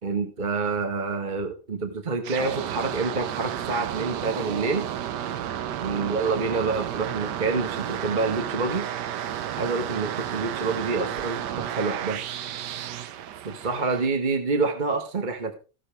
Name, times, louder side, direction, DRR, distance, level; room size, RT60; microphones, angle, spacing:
voice 1, 0.0-4.9 5.8-8.9 9.6-12.2 13.4-15.6, right 4 dB, 30° right, 5 dB, 1.6 m, -27 dB
sound 1, 2.2-14.1, right 10 dB, 90° right, 1.4 m, -32 dB
15.0 x 11.0 x 3.4 m, 0.33 s
omnidirectional pair, 1.8 m